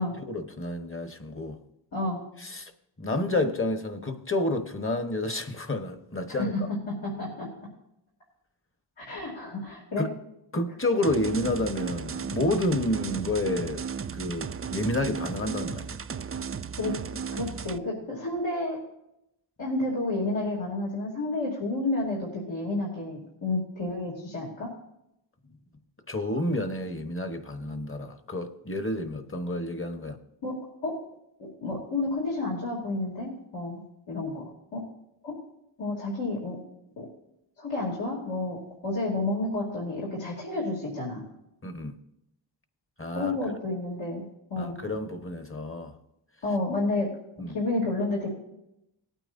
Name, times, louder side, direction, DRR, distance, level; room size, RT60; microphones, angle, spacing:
voice 1, 0.0-1.6 2.4-2.7 3.0-6.5 10.0-10.1 10.5-13.8 14.1-16.0 26.1-30.2 41.6-42.0 43.0-43.3 44.6-45.9 47.4-47.5, left 1 dB, 25° left, 1.2 m, -30 dB
voice 2, 6.3-6.6 6.9-7.5 9.0-10.1 16.8-16.9 17.3-18.8 19.6-24.7 30.4-30.6 30.8-31.0 31.4-33.8 34.1-34.8 35.2-35.4 35.8-36.6 37.0-37.1 37.6-41.2 43.1-44.2 44.5-44.8 46.4-47.1 47.5-48.3, left 2 dB, 75° left, 3.2 m, -30 dB
sound 1, 11.0-17.8, right 6 dB, 30° right, 0.4 m, -35 dB
18.5 x 9.0 x 2.7 m
cardioid pair, 65°, 46 cm